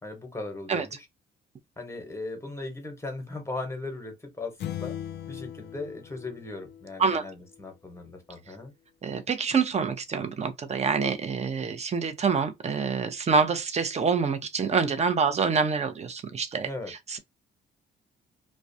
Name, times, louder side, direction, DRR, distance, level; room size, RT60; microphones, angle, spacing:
voice 1, 0.0-1.1 1.8-4.9 5.3-8.7 16.6-16.9, left 2 dB, 15° left, 1.0 m, -38 dB
sound 1, 4.6-7.3, left 10 dB, 60° left, 0.4 m, -38 dB
voice 2, 9.0-17.2, right 5 dB, 35° right, 0.6 m, -26 dB
2.3 x 2.2 x 2.6 m
cardioid pair, 90°, 20 cm